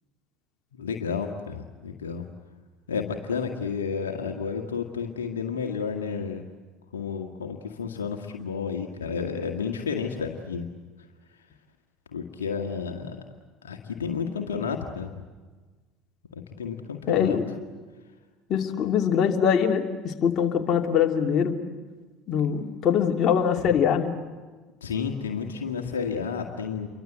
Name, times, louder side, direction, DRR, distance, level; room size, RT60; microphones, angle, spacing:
voice 1, 0.7-2.2 2.9-6.4 6.9-10.7 12.1-13.2 13.6-15.1 16.3-17.4 24.8-26.9, left 6 dB, 85° left, 3 dB, 1.7 m, -31 dB
voice 2, 17.1-17.4 18.5-21.6 22.3-24.1, left 8 dB, 45° left, 2 dB, 2.8 m, -23 dB
29.0 x 24.0 x 8.0 m, 1.3 s
hypercardioid pair, 70°, 0 cm